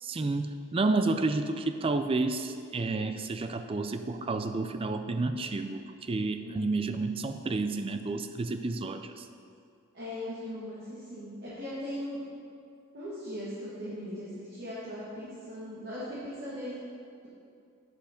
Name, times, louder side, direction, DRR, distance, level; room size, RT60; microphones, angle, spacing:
voice 1, 0.0-9.3, right 3 dB, 25° right, 8 dB, 0.4 m, -30 dB
voice 2, 6.4-6.8 9.9-12.2 12.9-16.8, left 1 dB, 50° right, -10 dB, 1.8 m, -39 dB
10.5 x 5.3 x 5.1 m, 2.4 s
head